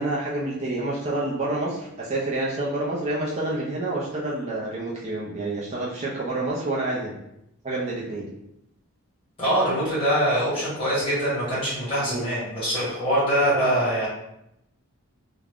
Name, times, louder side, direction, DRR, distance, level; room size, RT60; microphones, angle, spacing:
voice 1, 0.0-7.2 7.6-8.3 12.0-12.2, right 2 dB, 30° right, -6 dB, 0.5 m, -28 dB
voice 2, 9.4-14.1, right 1 dB, 25° left, -9 dB, 1.3 m, -23 dB
2.4 x 2.2 x 3.4 m, 0.82 s
head